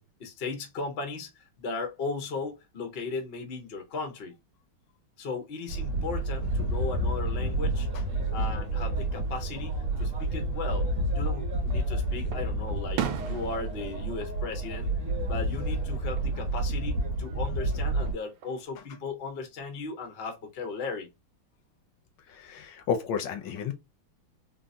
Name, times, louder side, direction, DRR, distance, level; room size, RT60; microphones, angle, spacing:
voice 1, 0.0-4.3 5.2-7.9 8.3-14.9 15.3-21.1, left 4 dB, 90° left, 0.5 m, -36 dB
sound 1, 5.7-18.1, right 1 dB, 50° right, 1.0 m, -30 dB
Fireworks, 11.1-11.8 12.3-15.4 15.8-16.3 17.9-18.7, right 10 dB, 75° right, 1.4 m, -38 dB
voice 2, 22.3-23.7, left 7 dB, 75° left, 1.1 m, -31 dB
3.8 x 2.0 x 2.5 m
omnidirectional pair, 2.4 m